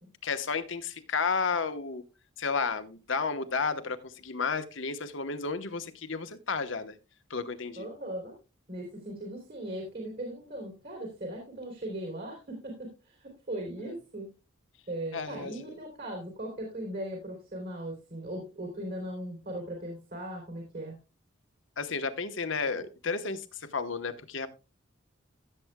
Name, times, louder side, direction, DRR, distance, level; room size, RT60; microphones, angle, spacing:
voice 1, 0.2-2.0 2.4-7.0 7.3-7.9 13.8-13.9 15.1-15.5 21.8-24.5, left 4 dB, 70° left, 10 dB, 1.1 m, -32 dB
voice 2, 7.8-8.3 8.7-14.3 14.9-20.9, right 1 dB, 50° right, 0 dB, 3.2 m, -38 dB
15.5 x 7.8 x 2.2 m, 0.30 s
head